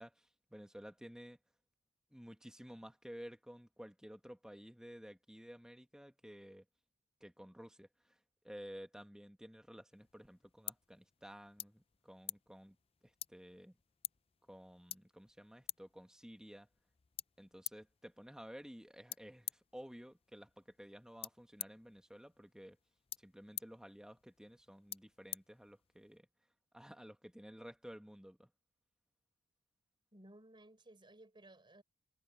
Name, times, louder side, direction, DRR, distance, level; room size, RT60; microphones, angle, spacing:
voice 1, 0.0-1.4 2.1-6.6 7.2-8.2 8.4-12.8 13.0-13.8 14.5-16.7 17.4-22.8 23.2-26.3 26.7-28.5, equal, 5° right, 1.6 m, -53 dB
sound 1, 9.9-26.2, left 11 dB, 25° left, 0.5 m, -51 dB
voice 2, 30.1-31.8, right 1 dB, 20° right, 4.9 m, -59 dB
head